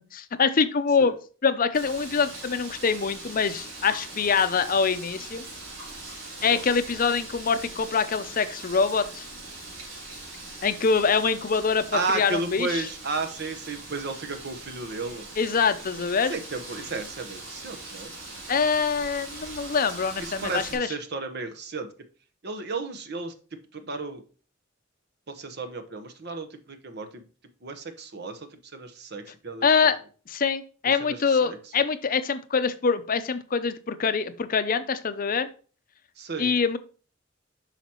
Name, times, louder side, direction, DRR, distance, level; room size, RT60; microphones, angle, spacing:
voice 1, 0.1-1.2 1.4-5.4 6.4-9.2 10.6-12.9 15.4-16.3 18.5-20.9 29.6-30.0 30.3-35.5 36.4-36.8, left 5 dB, 45° left, 12 dB, 0.6 m, -24 dB
Wind, 1.7-20.8, right 2 dB, 85° right, 3.3 m, -41 dB
voice 2, 11.9-15.3 16.3-18.1 20.2-21.9 22.4-23.3 23.7-24.2 25.3-27.2 27.6-28.4 28.7-29.9 31.0-31.6 36.2-36.5, right 3 dB, 60° right, 7 dB, 1.1 m, -33 dB
8.2 x 5.8 x 3.0 m, 0.38 s
head